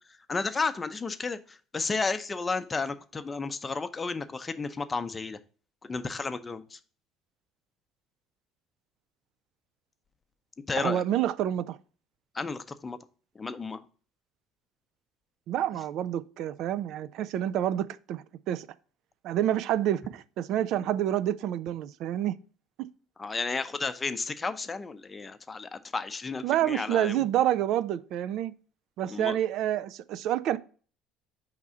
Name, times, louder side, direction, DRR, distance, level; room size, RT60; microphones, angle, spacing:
voice 1, 0.3-5.4 5.8-6.8 10.7-11.0 12.3-13.0 13.3-13.8 23.2-27.3 29.1-29.4, left 4 dB, 25° left, 0.6 m, -32 dB
voice 2, 10.8-11.8 15.5-18.7 19.2-22.4 26.4-28.5 29.0-30.6, right 11 dB, 65° right, 0.4 m, -28 dB
4.7 x 3.6 x 5.5 m
hypercardioid pair, 70°, 0 cm